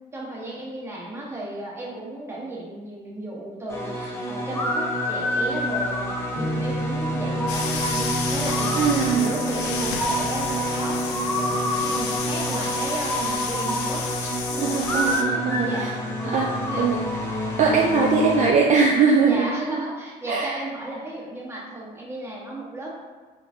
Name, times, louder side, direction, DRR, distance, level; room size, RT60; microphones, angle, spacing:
voice 1, 0.1-14.7 15.6-15.9 16.2-16.4 16.7-16.8 19.2-22.9, right 2 dB, 15° right, -5 dB, 1.3 m, -34 dB
sound 1, 3.7-18.5, equal, 15° left, 0.9 m, -27 dB
Piano, 6.3-13.0, right 1 dB, 35° left, 1.5 m, -34 dB
sound 2, 7.5-15.2, left 6 dB, 85° left, 0.6 m, -31 dB
voice 2, 8.8-9.3 14.6-15.9 16.2-17.0 17.6-19.5 20.3-20.6, right 5 dB, 45° right, 0 dB, 0.5 m, -21 dB
5.7 x 3.0 x 2.7 m, 1.4 s
cardioid pair, 110°, 17 cm